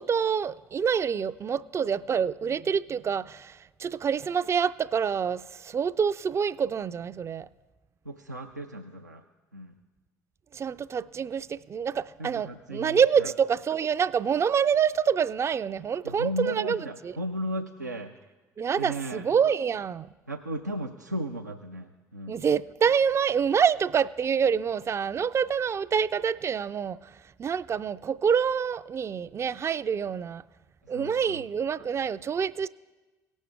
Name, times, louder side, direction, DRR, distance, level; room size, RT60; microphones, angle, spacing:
voice 1, 0.0-7.5 10.5-17.1 18.6-20.1 22.3-30.4 30.9-32.7, right 7 dB, 30° right, 0.4 m, -27 dB
voice 2, 8.1-9.2 9.5-9.7 12.2-13.3 16.0-18.1 18.8-19.3 20.3-22.4 30.9-31.4, equal, 85° right, 0.4 m, -35 dB
18.5 x 6.3 x 3.5 m
figure-of-eight pair, 50°, 9 cm